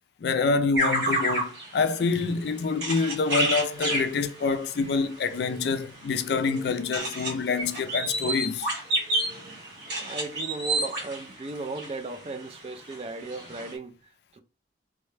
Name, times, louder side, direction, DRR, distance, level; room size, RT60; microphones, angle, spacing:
voice 1, 0.2-8.7, left 4 dB, 65° left, 0.3 m, -26 dB
sound 1, 0.7-12.4 12.9-13.0 13.2-13.7, right 1 dB, 65° right, 1.6 m, -31 dB
voice 2, 9.8-14.4, right 2 dB, 35° right, 0.3 m, -36 dB
3.6 x 2.1 x 3.1 m
head